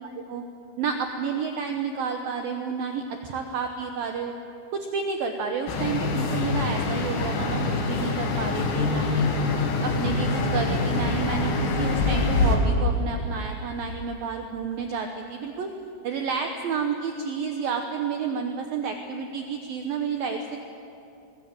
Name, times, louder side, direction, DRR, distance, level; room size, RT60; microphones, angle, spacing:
voice 1, 0.0-0.4 0.8-4.3 4.7-9.3 9.8-15.7 16.0-20.6, right 6 dB, 90° right, 4 dB, 2.0 m, -30 dB
sound 1, 5.7-12.6, left 3 dB, 85° left, 5.0 m, -25 dB
21.0 x 21.0 x 8.8 m, 2.7 s
omnidirectional pair, 5.9 m